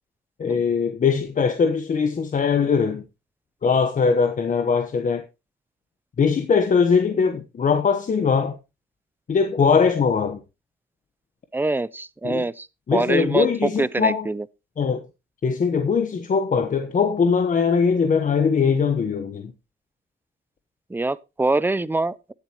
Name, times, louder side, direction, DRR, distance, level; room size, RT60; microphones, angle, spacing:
voice 1, 0.4-3.0 3.6-5.2 6.2-8.5 9.3-10.4 12.2-12.4 12.9-14.3 14.8-15.0 15.4-19.5, left 5 dB, 40° left, 1.1 m, -21 dB
voice 2, 11.5-12.7 12.9-13.5 13.8-14.4 20.9-22.3, right 2 dB, 10° right, 0.5 m, -24 dB
17.0 x 7.3 x 2.9 m
cardioid pair, 90°, 20 cm